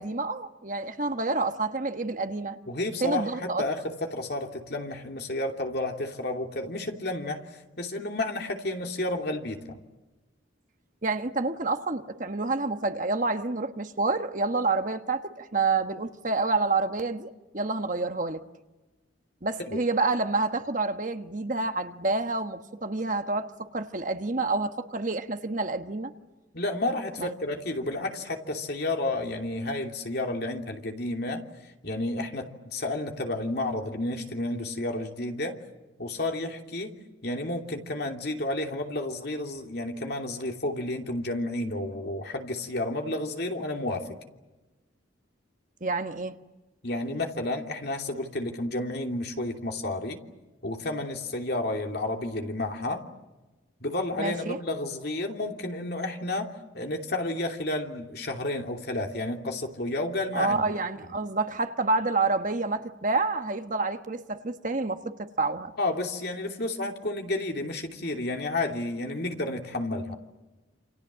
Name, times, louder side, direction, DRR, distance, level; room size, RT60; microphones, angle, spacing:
voice 1, 0.0-2.6 3.0-3.6 11.0-18.4 19.4-26.1 27.2-27.3 45.8-46.3 54.2-54.6 60.3-65.7, right 3 dB, 40° right, 1.3 m, -28 dB
voice 2, 2.7-9.8 19.7-19.8 26.5-35.6 36.0-36.9 37.2-44.1 46.8-50.2 50.6-53.0 53.8-60.6 65.8-70.2, left 2 dB, 50° left, 3.0 m, -31 dB
28.5 x 27.0 x 7.6 m
head